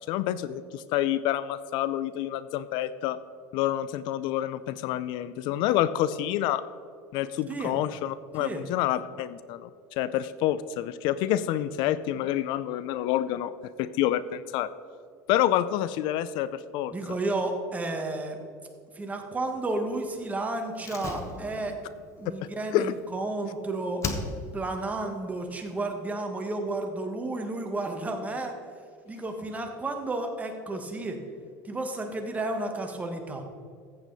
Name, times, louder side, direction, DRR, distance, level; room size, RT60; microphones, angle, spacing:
voice 1, 0.1-3.2 3.5-6.6 7.1-13.5 13.8-14.7 15.3-16.9 22.7-22.9, left 12 dB, 65° left, 15 dB, 0.5 m, -28 dB
voice 2, 16.9-18.4 18.9-21.7 22.2-24.0 24.5-28.5 29.0-31.2 31.6-33.4, right 2 dB, 15° right, 4 dB, 1.6 m, -32 dB
Slam, 20.8-23.5 24.0-24.8 25.0-25.1, left 4 dB, 35° left, 1.3 m, -37 dB
14.0 x 8.3 x 4.1 m, 2.2 s
supercardioid pair, 125°, 9 cm